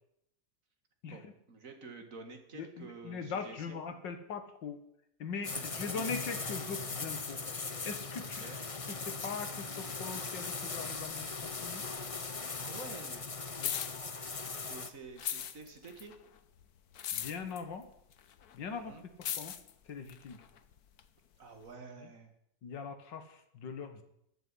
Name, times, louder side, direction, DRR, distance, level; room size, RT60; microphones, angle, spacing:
voice 1, 1.1-3.8 5.5-5.9 8.2-8.6 12.6-13.3 14.6-16.1 18.7-19.0 21.4-22.3, right 3 dB, 50° right, 5 dB, 2.5 m, -49 dB
voice 2, 2.5-4.8 5.2-8.4 8.9-11.8 13.6-13.7 17.1-17.9 18.5-18.9 19.4-19.5 19.9-20.4 22.6-24.0, left 5 dB, 85° left, 8 dB, 2.2 m, -41 dB
sound 1, 5.4-14.9, left 4 dB, 30° left, 0.6 m, -39 dB
sound 2, 12.5-14.7 15.1-21.1 21.7-21.8, left 9 dB, 65° left, 1.4 m, -40 dB
14.0 x 9.2 x 9.8 m, 0.76 s
omnidirectional pair, 1.9 m